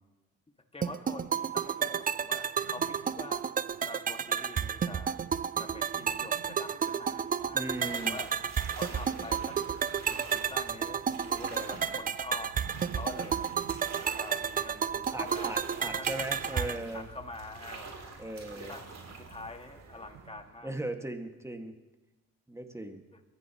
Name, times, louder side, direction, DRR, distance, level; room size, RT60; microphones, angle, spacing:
voice 1, 0.7-3.4 3.9-5.2 5.6-7.7 8.0-8.3 8.8-9.6 10.0-12.5 12.9-13.5 14.1-15.6 15.9-16.1 16.5-18.1 18.6-18.9 19.2-20.7 23.1-23.2, left 2 dB, 15° left, 4 dB, 2.1 m, -45 dB
sound 1, 0.8-16.8, right 7 dB, 25° right, 0.4 m, -32 dB
Livestock farm animals working animals, 2.6-3.8 4.1-4.6 5.9-6.9 8.5-10.2 12.5-13.9 15.9-17.0 18.8-20.5, right 9 dB, 85° right, 1.0 m, -54 dB
sound 2, 6.9-20.7, right 3 dB, 50° right, 3.5 m, -47 dB
voice 2, 7.5-8.2 15.1-17.1 18.2-18.8 20.6-21.7 22.5-23.0, right 1 dB, 10° right, 5 dB, 2.0 m, -38 dB
22.5 x 14.0 x 3.1 m, 1.1 s
supercardioid pair, 60°, 35 cm